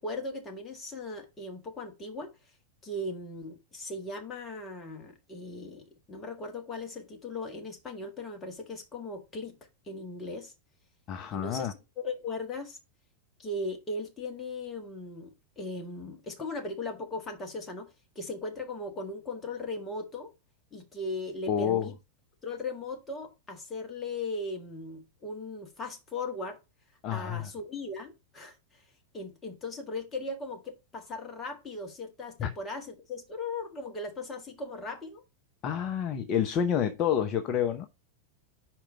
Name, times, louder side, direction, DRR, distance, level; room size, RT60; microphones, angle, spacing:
voice 1, 0.0-2.3 2.8-9.6 9.9-10.5 11.3-12.8 13.4-20.3 20.7-22.0 22.4-26.6 27.1-28.8 29.1-35.2, left 2 dB, 20° left, 1.6 m, -38 dB
voice 2, 11.1-11.7 21.5-21.9 27.0-27.5 32.4-32.5 35.6-37.9, left 9 dB, 35° left, 0.6 m, -28 dB
5.0 x 4.4 x 5.1 m
figure-of-eight pair, 90°, 0 cm